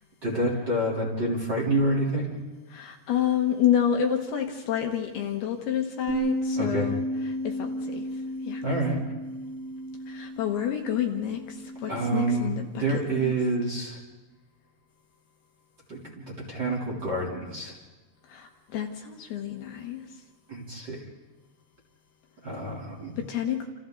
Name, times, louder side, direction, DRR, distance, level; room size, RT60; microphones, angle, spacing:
voice 1, 0.2-2.3 6.6-6.9 8.6-9.0 11.9-14.0 15.9-17.7 20.5-21.0 22.4-23.1, right 2 dB, 25° right, -3 dB, 3.4 m, -28 dB
voice 2, 2.7-8.6 10.1-13.3 18.2-20.2 23.2-23.7, left 9 dB, 70° left, 3 dB, 3.1 m, -29 dB
Bass guitar, 6.1-12.3, equal, 75° right, 6.8 m, -33 dB
29.0 x 28.0 x 3.9 m, 1.2 s
omnidirectional pair, 5.2 m